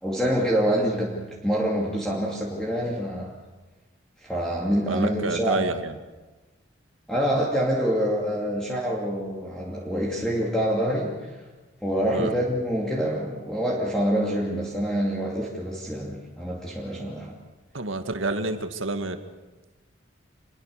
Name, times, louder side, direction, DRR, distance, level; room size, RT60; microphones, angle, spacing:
voice 1, 0.0-3.4 4.2-5.7 7.1-11.4 11.8-17.4, equal, 5° left, -3 dB, 2.6 m, -26 dB
voice 2, 4.9-5.9 12.1-12.3 17.7-19.2, right 2 dB, 85° right, 7 dB, 2.0 m, -28 dB
27.5 x 21.5 x 6.8 m, 1.2 s
head